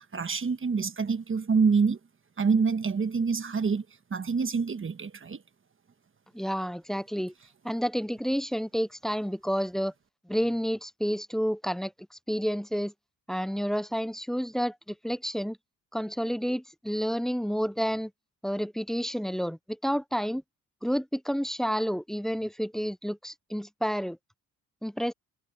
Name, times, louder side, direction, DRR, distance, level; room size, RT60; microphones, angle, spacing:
voice 1, 0.0-2.0 2.4-3.8 4.1-5.4, right 5 dB, 35° right, 1.3 m, -26 dB
voice 2, 6.3-7.3 7.6-9.9 10.3-11.9 12.3-12.9 13.3-15.6 15.9-18.1 18.4-20.4 20.8-24.2 24.8-25.1, equal, ahead, 0.4 m, -30 dB
cardioid pair, 80°, 36 cm